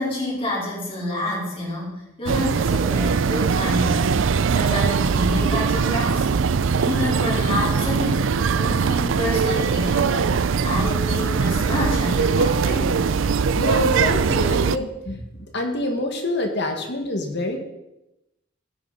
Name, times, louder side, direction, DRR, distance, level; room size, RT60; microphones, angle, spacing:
voice 1, 0.0-4.2 4.5-6.3 6.8-10.3 10.6-13.0, left 1 dB, 30° left, -5 dB, 4.3 m, -28 dB
sound 1, 2.3-14.8, right 5 dB, 70° right, 0.4 m, -21 dB
voice 2, 13.5-17.6, left 2 dB, 60° left, 4 dB, 1.9 m, -27 dB
16.5 x 9.3 x 4.2 m, 0.92 s
head